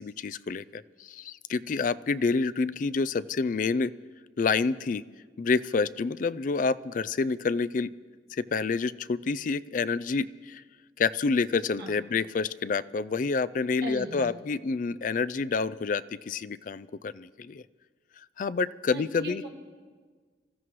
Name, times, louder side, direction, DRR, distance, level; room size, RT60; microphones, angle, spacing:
voice 1, 0.0-3.9 4.4-5.0 5.4-7.9 8.3-10.6 11.0-17.6 18.4-19.4, left 4 dB, 45° left, 15 dB, 0.3 m, -28 dB
voice 2, 13.8-14.3 18.9-19.5, right 2 dB, 55° right, 0 dB, 2.0 m, -38 dB
26.0 x 14.0 x 3.1 m, 1.5 s
head